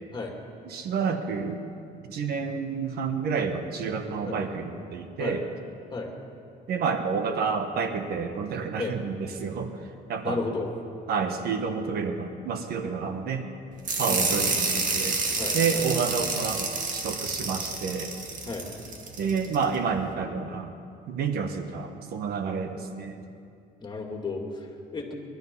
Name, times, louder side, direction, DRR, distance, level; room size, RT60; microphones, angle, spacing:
voice 1, 0.6-1.6 2.0-5.4 6.7-9.8 10.1-10.4 11.1-13.4 14.0-15.2 15.5-18.1 19.2-20.8 21.1-23.2, right 5 dB, 70° right, 7 dB, 1.4 m, -29 dB
voice 2, 10.2-10.7 13.0-13.1 14.1-14.2 15.4-15.9 18.5-18.7 23.8-25.1, left 3 dB, 25° left, 1 dB, 2.6 m, -33 dB
sound 1, 13.8-19.6, right 4 dB, 50° right, 2.2 m, -29 dB
21.5 x 12.0 x 5.5 m, 2.5 s
cardioid pair, 110°, 17 cm